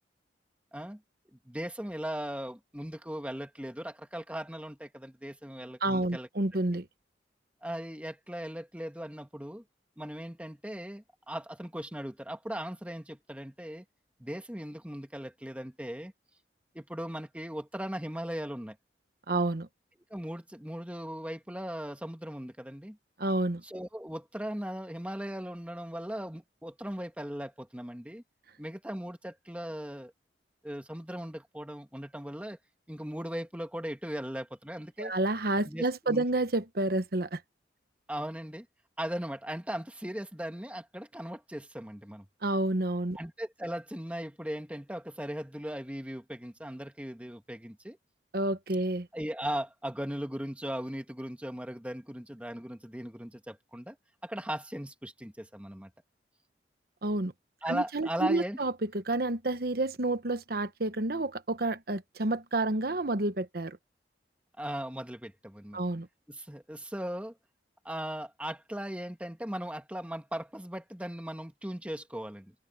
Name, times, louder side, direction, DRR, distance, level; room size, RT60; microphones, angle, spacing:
voice 1, 0.7-1.0 1.5-6.3 7.6-9.6 10.0-13.8 14.2-16.1 16.7-18.8 20.1-23.0 23.6-28.2 28.6-30.1 30.6-32.6 32.9-35.1 35.7-36.2 38.1-38.7 39.0-42.3 43.2-48.0 49.1-54.0 54.2-55.9 57.6-58.6 64.6-65.8 66.3-67.3 67.9-72.5, equal, 5° right, 1.7 m, -38 dB
voice 2, 5.8-6.9 19.3-19.7 23.2-23.6 35.0-37.4 42.4-43.2 48.3-49.1 57.0-57.3 57.7-63.8 65.7-66.1, right 2 dB, 55° right, 1.1 m, -29 dB
head